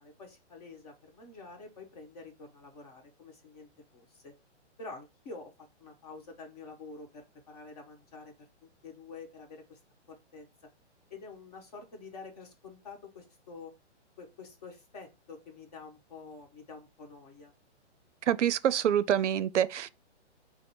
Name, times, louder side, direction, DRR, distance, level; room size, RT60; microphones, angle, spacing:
voice 1, 0.0-4.3 4.8-8.5 8.8-9.8 10.1-10.5 11.1-13.7 14.2-17.5, left 3 dB, 35° left, 1.3 m, -48 dB
voice 2, 18.3-19.9, right 9 dB, 75° right, 0.6 m, -26 dB
5.1 x 2.1 x 4.6 m
hypercardioid pair, 165°, 36 cm